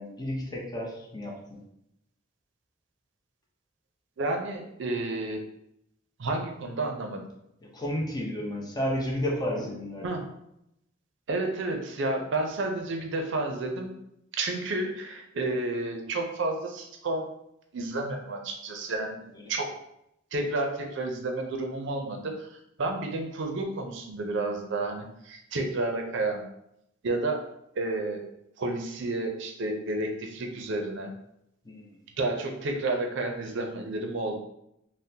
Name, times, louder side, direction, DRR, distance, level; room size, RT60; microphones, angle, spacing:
voice 1, 0.0-1.6 7.7-10.2 31.7-31.9, equal, 20° left, -2 dB, 0.6 m, -32 dB
voice 2, 4.2-5.4 6.2-7.2 10.0-10.2 11.3-13.9 14.3-17.3 17.7-19.2 19.5-19.7 20.3-26.4 27.0-27.4 27.8-28.2 28.6-31.1 32.2-34.4, right 2 dB, 65° right, 3 dB, 0.5 m, -31 dB
3.6 x 2.0 x 2.7 m, 0.79 s
head